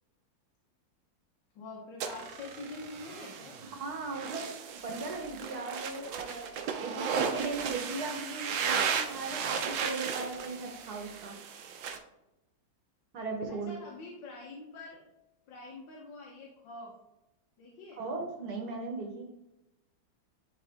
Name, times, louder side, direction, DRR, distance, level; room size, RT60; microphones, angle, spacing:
voice 1, 1.6-3.6 13.5-15.0 15.5-16.9 17.6-18.0, left 3 dB, 70° left, -2 dB, 1.7 m, -45 dB
sound 1, 2.0-12.0, right 6 dB, 75° right, 1.4 m, -35 dB
voice 2, 3.8-4.5 4.7-11.4 13.1-13.7 18.0-19.3, right 3 dB, 55° right, 2 dB, 1.5 m, -37 dB
10.5 x 3.7 x 3.5 m, 0.95 s
omnidirectional pair, 2.1 m